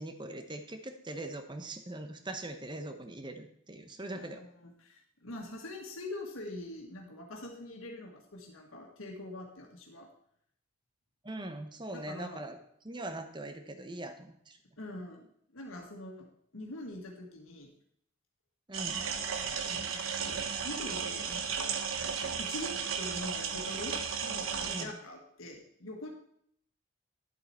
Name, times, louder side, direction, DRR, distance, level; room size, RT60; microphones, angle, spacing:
voice 1, 0.0-4.4 11.2-12.6 12.8-14.6 18.7-19.1 24.7-25.0, right 1 dB, 20° right, 7 dB, 0.9 m, -41 dB
voice 2, 4.1-10.1 11.9-12.4 14.8-16.3 16.5-17.7 19.1-19.2 19.6-21.9 22.4-26.1, left 1 dB, 90° left, 0 dB, 1.7 m, -44 dB
sound 1, 18.7-24.9, right 6 dB, 85° right, 1.0 m, -34 dB
11.0 x 7.8 x 4.3 m, 0.69 s
head